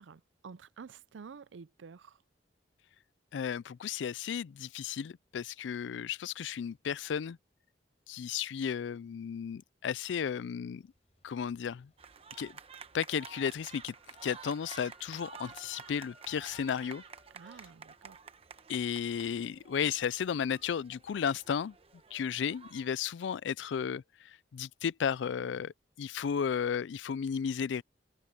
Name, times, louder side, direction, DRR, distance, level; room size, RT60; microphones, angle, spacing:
voice 1, 0.0-2.2 17.3-18.2, right 5 dB, 90° right, 0.5 m, -50 dB
voice 2, 3.3-7.4 8.1-10.8 11.2-11.9 12.4-12.5 12.9-13.9 14.2-17.0 18.7-21.7 22.1-27.8, left 7 dB, 80° left, 0.4 m, -34 dB
Fire, 10.7-17.0 17.7-17.8, left 1 dB, 35° left, 7.5 m, -79 dB
sound 1, 12.0-22.9, right 5 dB, 30° right, 1.0 m, -51 dB
Wind instrument woodwind instrument, 13.5-17.6, equal, ahead, 1.5 m, -62 dB
head